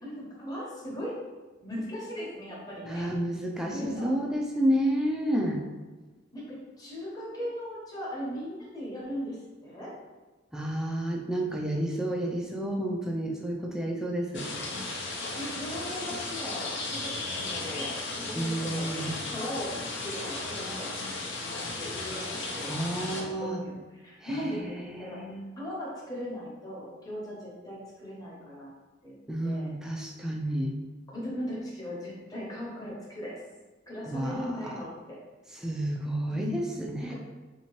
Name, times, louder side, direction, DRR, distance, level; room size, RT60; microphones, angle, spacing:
voice 1, 0.0-1.1 1.6-3.1 3.7-4.1 6.3-9.9 15.3-18.9 19.3-19.7 20.0-21.0 21.3-22.7 23.1-25.2 25.6-28.7 29.0-29.2 29.4-29.7 31.1-33.4 33.9-35.2 36.3-36.5 37.0-37.1, equal, 20° left, -5 dB, 0.9 m, -38 dB
voice 2, 2.9-5.6 10.5-14.5 18.4-19.1 22.7-23.6 24.2-25.4 29.3-30.8 34.1-34.7 35.5-37.1, right 1 dB, 5° right, 0 dB, 0.3 m, -30 dB
sound 1, 14.3-23.2, left 2 dB, 60° left, 0.6 m, -35 dB
3.4 x 2.8 x 3.0 m, 1.2 s
head